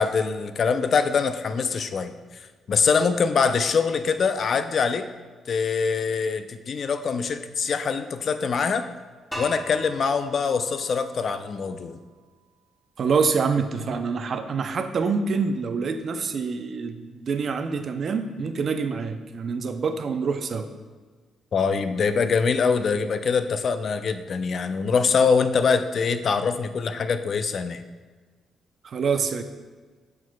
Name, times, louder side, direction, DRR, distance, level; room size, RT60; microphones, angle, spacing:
voice 1, 0.0-2.4 2.7-5.0 5.5-8.9 9.4-12.0 21.5-27.8, left 5 dB, 50° left, 10 dB, 0.4 m, -24 dB
sound 1, 9.3-12.2, right 1 dB, ahead, 1.2 m, -40 dB
voice 2, 13.0-20.7 28.8-29.4, right 5 dB, 50° right, 8 dB, 0.5 m, -26 dB
7.2 x 6.0 x 2.2 m, 1.4 s
cardioid pair, 90°, 0 cm